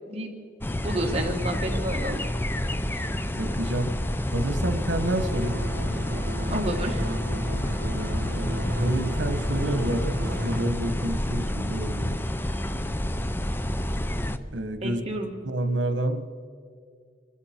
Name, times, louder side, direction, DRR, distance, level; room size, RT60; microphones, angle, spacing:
sound 1, 0.6-14.4, left 1 dB, 10° left, 0.5 m, -29 dB
voice 1, 0.8-2.2 6.1-6.2 6.5-7.1 14.8-15.3, right 1 dB, 35° right, 1 dB, 2.0 m, -30 dB
voice 2, 3.4-3.9 4.3-5.6 7.9-12.2 14.5-15.0 15.4-16.3, right 1 dB, 85° right, 8 dB, 1.2 m, -29 dB
sound 2, 5.1-10.6, equal, 60° right, 1.2 m, -34 dB
25.5 x 12.5 x 4.4 m, 2.1 s
head